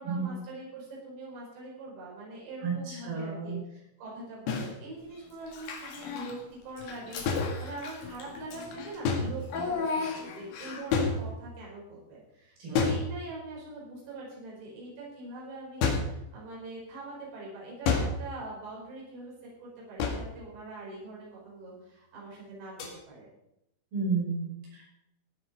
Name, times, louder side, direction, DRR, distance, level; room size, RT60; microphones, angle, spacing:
voice 1, 0.0-6.4 6.6-19.3 19.6-23.3, right 2 dB, 75° right, -5 dB, 7.2 m, -43 dB
voice 2, 2.6-3.6 12.6-12.7 23.9-24.9, right 4 dB, 60° right, -4 dB, 7.4 m, -32 dB
sound 1, 4.5-4.7 7.3-8.1 9.1-9.7 10.9-11.7 12.8-13.6 15.8-16.2 17.9-18.4 20.0-20.4 22.8-23.0, left 4 dB, 80° left, 4.2 m, -29 dB
Child speech kid speaking / Bathtub (filling or washing), 5.5-6.4 6.8-11.0, left 4 dB, 55° left, 3.0 m, -36 dB
16.5 x 9.7 x 5.2 m, 0.83 s
omnidirectional pair, 5.1 m